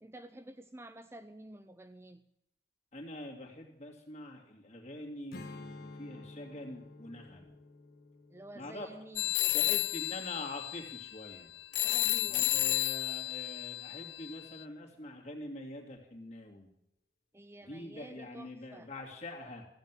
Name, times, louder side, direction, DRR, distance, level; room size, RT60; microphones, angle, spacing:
voice 1, 0.0-2.2 8.3-9.7 11.8-12.8 17.3-18.9, right 1 dB, 15° right, 10 dB, 0.5 m, -51 dB
voice 2, 2.9-7.5 8.5-8.9 9.5-11.5 12.2-16.7 17.6-19.7, left 1 dB, 40° left, 1 dB, 2.6 m, -45 dB
Strum, 5.3-10.6, left 2 dB, 55° left, 1.4 m, -51 dB
sound 1, 9.2-14.6, left 17 dB, 80° left, 0.4 m, -32 dB
14.5 x 7.9 x 9.1 m, 0.80 s
head